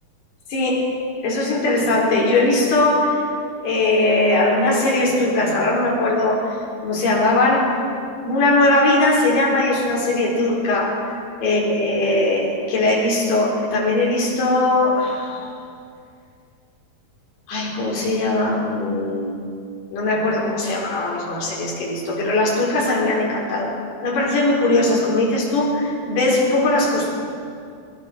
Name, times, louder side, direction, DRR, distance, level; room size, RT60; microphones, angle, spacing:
voice 1, 0.5-0.9 1.2-3.2 3.6-6.5 6.8-7.8 8.2-11.1 11.4-15.5 17.5-19.5 19.9-23.7 24.0-27.1, left 2 dB, 75° left, -3 dB, 6.3 m, -20 dB
26.0 x 21.0 x 6.3 m, 2.4 s
omnidirectional pair, 4.5 m